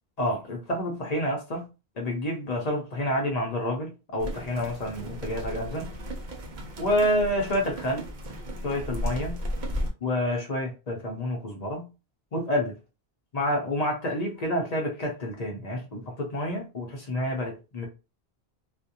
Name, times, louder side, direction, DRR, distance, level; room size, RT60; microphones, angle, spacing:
voice 1, 0.2-1.7 2.0-5.9 6.8-8.1 8.6-9.4 10.0-11.9 12.3-12.7 13.3-17.9, left 1 dB, 50° left, 0.6 m, -28 dB
sound 1, 4.2-9.9, equal, 55° right, 0.6 m, -35 dB
2.4 x 2.1 x 2.7 m
omnidirectional pair, 1.0 m